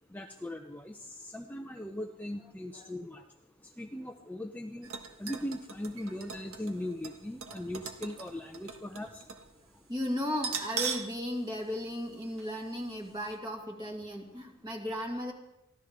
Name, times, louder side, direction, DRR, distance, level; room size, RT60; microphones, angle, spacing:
voice 1, 0.1-3.2 3.8-4.9 5.2-9.2, left 1 dB, 5° left, 4 dB, 0.6 m, -39 dB
sound 1, 4.8-9.5 9.8-9.9 10.4-11.2 11.5-11.6 12.4-12.6 12.9-13.0, right 6 dB, 70° right, 1.6 m, -40 dB
voice 2, 9.9-15.3, left 1 dB, 20° right, 1 dB, 2.3 m, -35 dB
24.0 x 15.5 x 3.6 m, 0.88 s
head